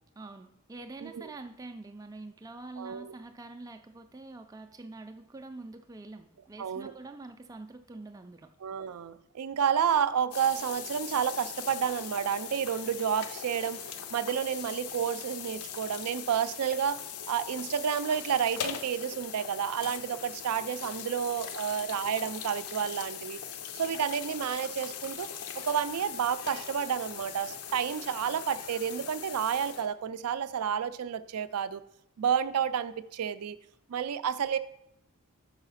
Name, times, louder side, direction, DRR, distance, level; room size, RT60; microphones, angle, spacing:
voice 1, 0.2-8.5 21.7-21.9, right 2 dB, 15° right, 6 dB, 0.3 m, -45 dB
voice 2, 1.0-1.3 2.8-3.1 6.6-6.9 8.6-13.8 14.1-23.4 23.8-25.3 25.6-31.8 32.2-33.6 33.9-34.6, right 8 dB, 85° right, 13 dB, 0.4 m, -30 dB
sound 1, 10.3-29.9, left 8 dB, 85° left, 0.6 m, -41 dB
5.5 x 4.8 x 5.6 m, 0.78 s
head